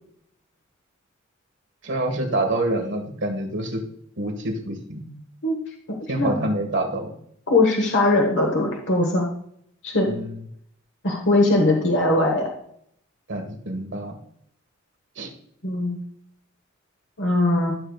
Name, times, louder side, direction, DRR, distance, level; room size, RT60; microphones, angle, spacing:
voice 1, 1.8-3.8 4.2-5.1 6.1-7.1 10.1-10.4 13.3-14.2 15.1-15.3, right 1 dB, 60° right, 2 dB, 1.5 m, -27 dB
voice 2, 7.5-9.3 9.8-10.1 11.0-12.5 15.6-16.0 17.2-17.7, left 2 dB, 60° left, 1 dB, 1.3 m, -20 dB
13.0 x 6.6 x 2.4 m, 0.69 s
head